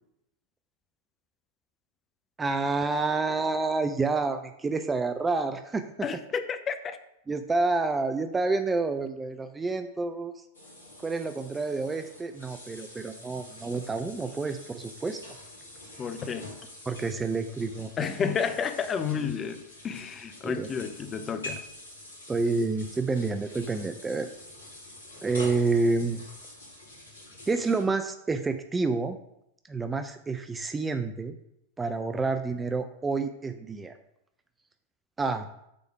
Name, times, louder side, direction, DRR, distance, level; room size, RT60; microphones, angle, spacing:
voice 1, 2.4-5.8 7.3-10.4 11.0-15.2 16.9-17.9 20.4-20.7 22.3-24.3 25.2-26.2 27.5-29.2 29.7-31.4 31.8-34.0 35.2-35.5, right 3 dB, 15° right, 8 dB, 0.4 m, -28 dB
voice 2, 6.0-7.0 16.0-16.5 18.0-21.6, left 6 dB, 25° left, 9 dB, 0.6 m, -31 dB
sound 1, 10.5-27.8, left 1 dB, 75° left, 2.5 m, -46 dB
7.5 x 3.5 x 4.7 m, 0.80 s
figure-of-eight pair, 90°, 0 cm